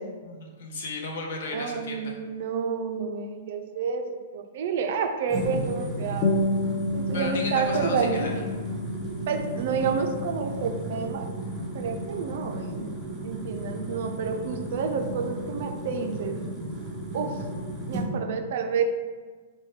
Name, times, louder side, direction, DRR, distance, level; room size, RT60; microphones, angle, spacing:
voice 1, 0.2-2.2 7.1-8.3, left 2 dB, 65° left, 1 dB, 0.7 m, -34 dB
voice 2, 1.5-4.0 4.3-6.3 6.9-8.3 9.3-11.3 11.7-12.9 13.2-16.4 17.1-17.4 17.9-18.8, right 5 dB, 55° right, 6 dB, 0.3 m, -29 dB
sound 1, 5.3-18.1, right 1 dB, 10° right, 0.7 m, -34 dB
sound 2, 6.2-11.2, left 2 dB, 25° left, 0.3 m, -31 dB
4.1 x 2.1 x 3.2 m, 1.4 s
hypercardioid pair, 160°, 0 cm